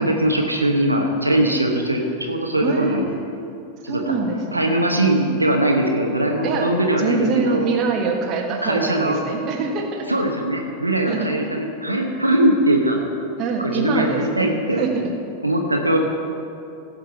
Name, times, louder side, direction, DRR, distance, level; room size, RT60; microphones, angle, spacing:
voice 1, 0.0-2.0 2.3-3.1 3.8-4.0 4.5-7.6 8.6-9.2 10.1-13.0 13.6-14.8 15.4-16.0, right 1 dB, 85° right, 1 dB, 1.1 m, -20 dB
voice 2, 2.6-3.6 3.9-4.8 6.4-6.7 7.0-10.1 11.1-11.5 13.4-14.5 14.8-15.1, right 4 dB, 35° right, 1 dB, 1.6 m, -24 dB
16.0 x 5.4 x 7.0 m, 2.7 s
figure-of-eight pair, 90°, 0 cm